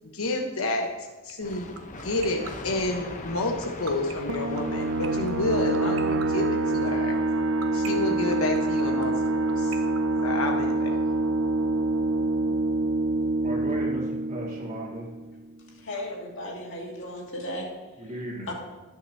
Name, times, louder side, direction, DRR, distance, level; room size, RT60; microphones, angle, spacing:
voice 1, 0.1-1.7 2.0-7.2 7.7-9.7 10.2-11.0, left 2 dB, 80° left, 1.2 m, -29 dB
sound 1, 1.3-10.9, right 7 dB, 80° right, 1.0 m, -39 dB
sound 2, 1.4-7.0, left 2 dB, 35° left, 0.9 m, -41 dB
sound 3, 4.3-15.6, right 2 dB, 60° right, 0.5 m, -26 dB
voice 2, 13.4-15.1 18.0-18.5, right 1 dB, 30° right, 2.3 m, -36 dB
voice 3, 15.8-17.7 18.5-18.6, left 1 dB, 60° left, 2.3 m, -35 dB
18.5 x 6.7 x 2.8 m
head